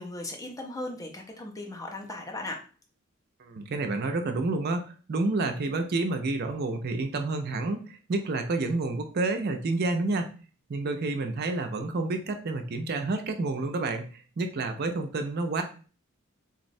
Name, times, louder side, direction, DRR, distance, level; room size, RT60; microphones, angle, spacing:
voice 1, 0.0-2.6, left 2 dB, 15° left, 1 dB, 0.5 m, -37 dB
voice 2, 3.4-10.3 10.7-15.6, right 3 dB, 45° right, 6 dB, 0.4 m, -29 dB
3.9 x 2.0 x 2.6 m, 0.38 s
head